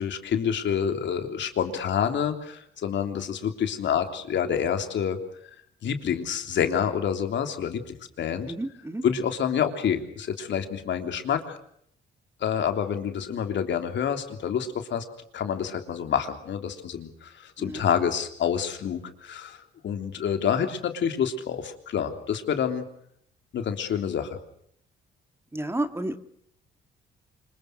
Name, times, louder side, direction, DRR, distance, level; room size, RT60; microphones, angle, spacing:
voice 1, 0.0-5.2 5.8-8.5 9.0-11.6 12.4-15.0 15.3-22.8 23.5-24.4, left 8 dB, 65° left, 6 dB, 3.4 m, -28 dB
voice 2, 8.5-9.1 17.6-17.8 25.5-26.2, right 1 dB, 10° right, 9 dB, 1.9 m, -31 dB
26.5 x 22.5 x 6.5 m, 0.69 s
cardioid pair, 90°, 20 cm